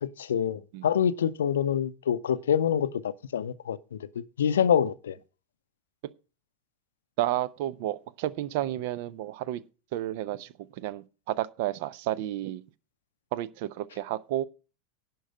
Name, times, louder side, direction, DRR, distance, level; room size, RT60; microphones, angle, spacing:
voice 1, 0.0-4.0 4.4-5.2, left 8 dB, 70° left, 0.5 m, -26 dB
voice 2, 7.2-9.6 9.9-12.6 13.3-14.5, right 14 dB, 55° right, 0.6 m, -31 dB
11.0 x 4.7 x 7.7 m
figure-of-eight pair, 85°, 0 cm